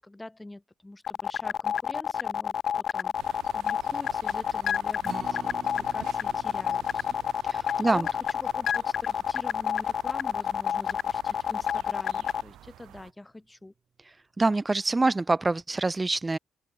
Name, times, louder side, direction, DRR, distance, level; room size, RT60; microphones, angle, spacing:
voice 1, 0.0-7.2 7.5-13.7, left 2 dB, 10° left, 4.9 m, -45 dB
sound 1, 1.1-12.4, left 8 dB, 60° left, 0.8 m, -28 dB
sound 2, 3.2-13.1, right 13 dB, 80° right, 2.0 m, -50 dB
Acoustic guitar, 5.0-11.3 11.7-11.8 12.3-12.4, right 6 dB, 45° right, 3.3 m, -48 dB
voice 2, 7.4-8.1 14.4-16.4, right 3 dB, 20° right, 1.4 m, -25 dB
cardioid pair, 90°, 0 cm